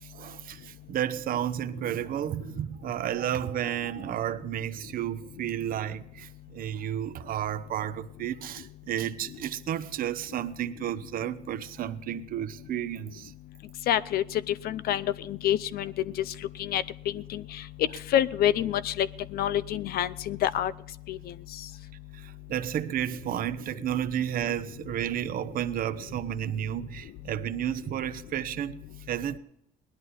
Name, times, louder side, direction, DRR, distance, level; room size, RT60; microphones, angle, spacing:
voice 1, 0.0-13.3 22.1-28.8 29.1-29.4, right 11 dB, 55° right, 0.8 m, -32 dB
voice 2, 13.9-15.9 16.6-16.8 17.1-17.6 18.1-19.1 19.3-20.7 21.1-21.2, left 11 dB, 65° left, 0.5 m, -27 dB
19.0 x 11.5 x 4.2 m
cardioid pair, 110°, 17 cm